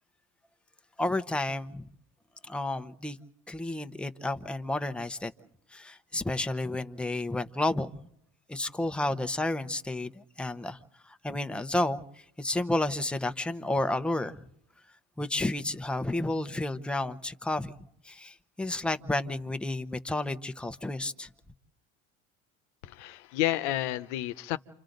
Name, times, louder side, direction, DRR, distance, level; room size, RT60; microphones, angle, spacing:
voice 1, 1.0-1.9 2.4-3.2 3.5-5.3 5.7-8.0 8.5-10.8 11.1-12.0 12.4-14.4 15.2-17.7 18.0-21.3, left 2 dB, 5° left, 0.8 m, -31 dB
voice 2, 22.8-24.6, left 14 dB, 85° left, 1.0 m, -30 dB
29.0 x 27.0 x 3.9 m
supercardioid pair, 105°, 34 cm